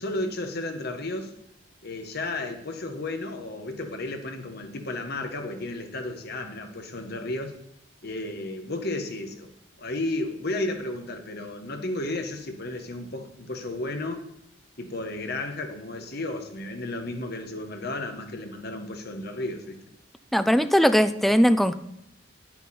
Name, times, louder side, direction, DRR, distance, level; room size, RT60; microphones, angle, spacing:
voice 1, 0.0-1.3 1.8-7.5 8.0-9.5 9.8-14.2 14.8-19.8, left 2 dB, 60° left, 6 dB, 1.3 m, -33 dB
voice 2, 20.3-21.7, equal, ahead, 11 dB, 0.4 m, -19 dB
9.5 x 9.0 x 4.3 m, 0.79 s
head